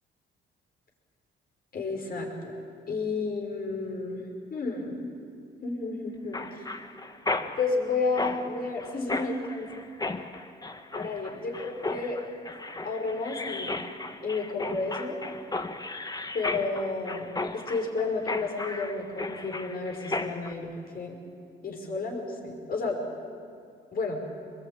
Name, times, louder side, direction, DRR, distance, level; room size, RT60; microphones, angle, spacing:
voice 1, 1.7-2.5 2.9-4.2 4.5-5.1 5.6-6.7 7.3-9.7 10.9-12.2 12.8-13.8 14.2-15.2 16.3-21.2 21.6-23.0 23.9-24.2, left 3 dB, 50° left, 1 dB, 6.0 m, -31 dB
Mechanisms, 6.3-20.5, left 2 dB, 20° left, 1.4 m, -35 dB
23.5 x 22.0 x 9.2 m, 2.4 s
cardioid pair, 90°, 20 cm